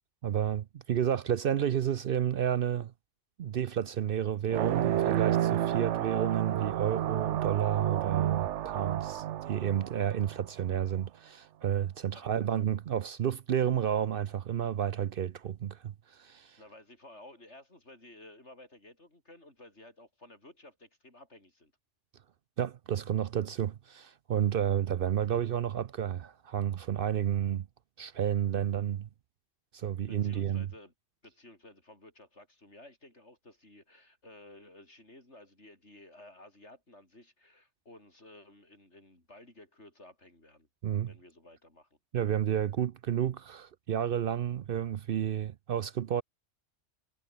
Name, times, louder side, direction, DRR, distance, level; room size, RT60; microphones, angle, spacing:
voice 1, 0.2-2.9 3.4-16.6 22.6-27.7 28.0-29.1 29.7-30.7 40.8-41.1 42.1-46.2, right 9 dB, 60° right, 0.7 m, -31 dB
sound 1, 4.5-10.7, right 12 dB, 85° right, 1.0 m, -31 dB
voice 2, 12.1-12.6 16.6-21.7 30.1-30.9 31.2-40.7 41.1-41.9, left 1 dB, 75° left, 7.1 m, -54 dB
omnidirectional pair, 1.2 m